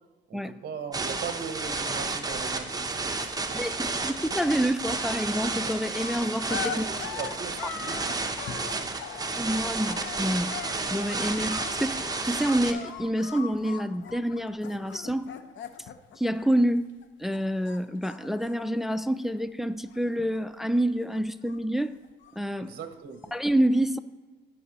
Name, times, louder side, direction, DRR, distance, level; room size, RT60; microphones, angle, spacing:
voice 1, 0.0-3.7 6.6-9.1 22.6-23.2, right 6 dB, 50° right, 8 dB, 0.8 m, -40 dB
sound 1, 0.9-12.7, right 3 dB, 20° right, 0.8 m, -32 dB
voice 2, 3.5-6.9 9.4-10.6 10.9-15.3 16.2-16.9 17.2-21.9 22.4-22.7 23.3-24.0, right 1 dB, ahead, 13 dB, 0.4 m, -27 dB
sound 2, 4.0-4.5 4.7-17.1 17.3-19.5 19.7-20.4 20.7-22.5 23.2-23.3, left 8 dB, 70° left, 0.7 m, -41 dB
16.0 x 5.4 x 2.9 m, 1.3 s
cardioid pair, 90°, 20 cm